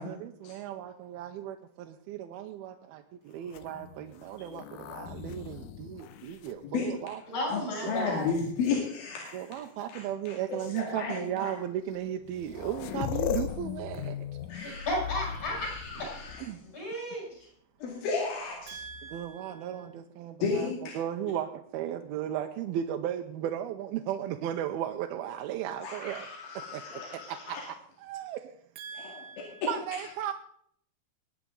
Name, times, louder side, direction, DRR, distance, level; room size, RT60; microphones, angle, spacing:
voice 1, 0.0-7.2 7.8-8.0 9.3-14.2 14.5-14.9 16.4-16.6 18.7-26.3 26.7-27.6 28.0-28.4 28.8-30.3, right 10 dB, 80° right, 4 dB, 2.5 m, -36 dB
sound 1, 3.4-7.3 8.0-8.7 9.8-9.9 10.6-10.8 11.9-12.0 12.2-16.7 18.6-19.3, left 9 dB, 85° left, 1.8 m, -39 dB
voice 2, 7.3-8.3 14.6-16.2 16.6-17.5, left 1 dB, 45° left, -3 dB, 8.0 m, -34 dB
voice 3, 7.9-9.4 9.9-11.5 14.5-14.9 15.6-16.4 17.8-18.8 20.4-20.9 25.8-27.6 29.0-29.2 29.6-29.7, left 5 dB, 70° left, -2 dB, 4.0 m, -33 dB
21.0 x 9.6 x 3.9 m, 0.66 s
omnidirectional pair, 4.5 m